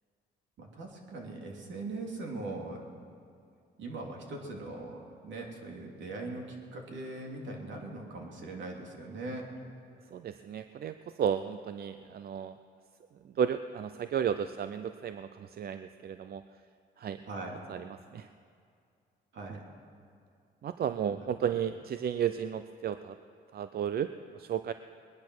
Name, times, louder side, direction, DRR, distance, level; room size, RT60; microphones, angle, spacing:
voice 1, 0.6-2.8 3.8-9.5 17.3-17.6 19.3-19.7 21.1-21.3, right 2 dB, 70° right, 1 dB, 2.8 m, -40 dB
voice 2, 10.1-12.6 13.2-16.4 17.0-17.2 17.7-18.3 19.5-19.6 20.6-23.2 23.5-24.7, right 8 dB, 50° right, 11 dB, 0.5 m, -33 dB
20.5 x 10.5 x 6.2 m, 2.4 s
cardioid pair, 90°, 20 cm